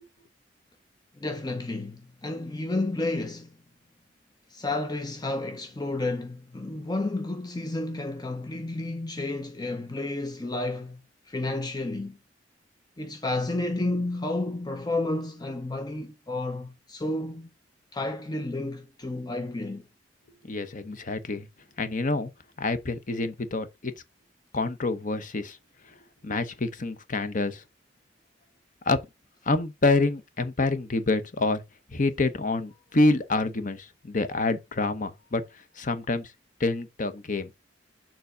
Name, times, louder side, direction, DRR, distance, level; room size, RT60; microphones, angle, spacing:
voice 1, 1.2-3.6 4.5-11.0 11.3-12.2 13.0-17.5 17.9-19.9, left 2 dB, 20° left, 0.7 m, -31 dB
voice 2, 20.4-21.5 21.8-22.3 22.6-23.9 24.5-25.6 26.2-27.6 28.8-29.0 29.5-31.6 31.9-35.4 35.8-36.3 36.6-37.5, left 2 dB, 45° left, 0.9 m, -27 dB
7.0 x 3.9 x 4.9 m
head